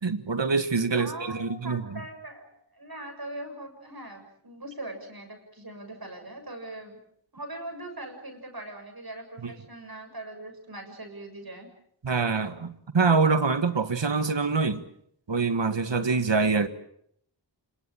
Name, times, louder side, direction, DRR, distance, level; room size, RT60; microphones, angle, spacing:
voice 1, 0.0-2.0 9.4-9.5 12.0-12.7 12.9-14.8 15.3-16.7, right 4 dB, 70° right, 1.9 m, -25 dB
voice 2, 1.0-7.0 7.3-11.7, right 1 dB, 50° right, 7.1 m, -41 dB
26.5 x 22.5 x 7.4 m
wide cardioid pair, 40°, 45 cm